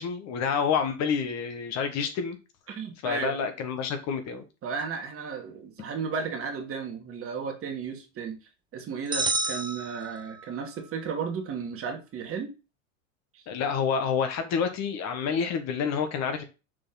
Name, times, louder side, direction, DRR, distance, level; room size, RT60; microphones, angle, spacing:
voice 1, 0.0-2.4 3.0-4.4 13.5-16.4, left 6 dB, 40° left, 1.4 m, -28 dB
voice 2, 2.7-3.3 4.6-8.4 8.7-12.5 13.3-13.4, right 5 dB, 35° right, 2.1 m, -34 dB
sound 1, 9.1-10.7, right 3 dB, 10° right, 0.8 m, -30 dB
6.5 x 4.2 x 3.9 m
hypercardioid pair, 95°, 39 cm